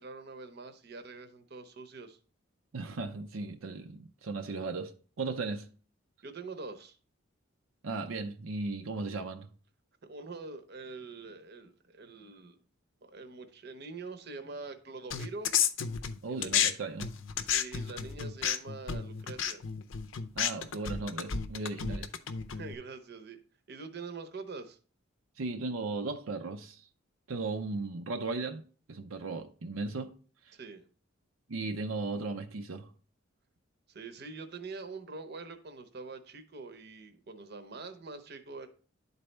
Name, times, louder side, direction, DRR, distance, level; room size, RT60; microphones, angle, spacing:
voice 1, 0.0-2.2 6.2-7.0 10.0-12.6 13.0-15.5 16.3-16.7 17.4-19.6 22.5-23.4 23.7-24.8 30.5-30.8 33.9-38.7, right 3 dB, 55° right, 0.8 m, -44 dB
voice 2, 2.7-5.7 7.8-9.5 16.2-17.1 20.3-22.1 25.4-26.9 27.3-30.2 30.4-30.5 31.5-32.9, right 3 dB, 90° right, 0.6 m, -36 dB
sound 1, 15.1-16.7 17.0-22.7, left 8 dB, 75° left, 0.6 m, -32 dB
10.5 x 4.1 x 3.3 m
head